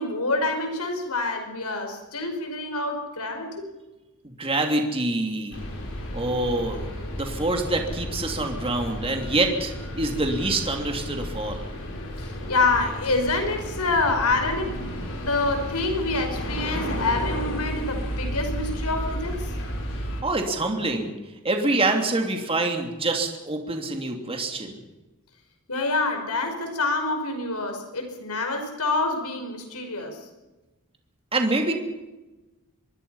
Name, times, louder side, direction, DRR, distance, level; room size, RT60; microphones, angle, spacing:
voice 1, 0.0-3.7 12.2-14.8 15.2-19.5 25.7-30.2, left 3 dB, 85° left, 5 dB, 5.3 m, -27 dB
voice 2, 4.2-5.7 6.1-6.9 7.2-11.7 20.2-21.1 21.4-24.8 31.3-31.7, right 2 dB, 25° right, 3 dB, 3.0 m, -26 dB
sound 1, 5.5-20.2, equal, 60° left, 6.1 m, -32 dB
25.0 x 22.0 x 5.7 m, 1.1 s
head